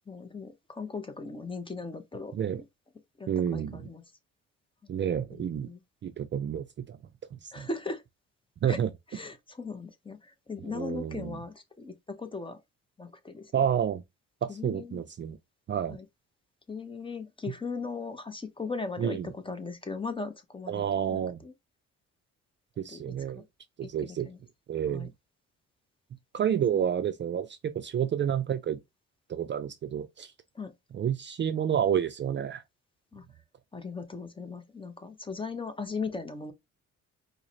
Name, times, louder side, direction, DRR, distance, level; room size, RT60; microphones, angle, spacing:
voice 1, 0.1-2.3 3.2-4.0 5.3-5.8 7.5-8.0 8.7-8.8 9.1-10.2 10.5-12.6 13.0-13.5 14.5-15.0 15.9-16.0 16.7-21.5 22.9-23.4 24.2-24.4 24.9-25.1 30.6-30.7 33.1-33.2 33.7-36.5, left 4 dB, 15° left, 0.6 m, -38 dB
voice 2, 3.3-3.9 4.9-5.7 6.0-7.0 7.3-7.7 8.6-8.9 10.6-11.4 13.5-14.0 14.4-15.4 15.7-16.0 19.0-19.3 20.7-21.4 22.8-23.4 23.8-24.3 24.7-25.1 26.3-28.8 29.3-30.3 30.9-32.6, right 9 dB, 40° right, 0.4 m, -30 dB
4.7 x 2.1 x 2.7 m
cardioid pair, 90°, 30 cm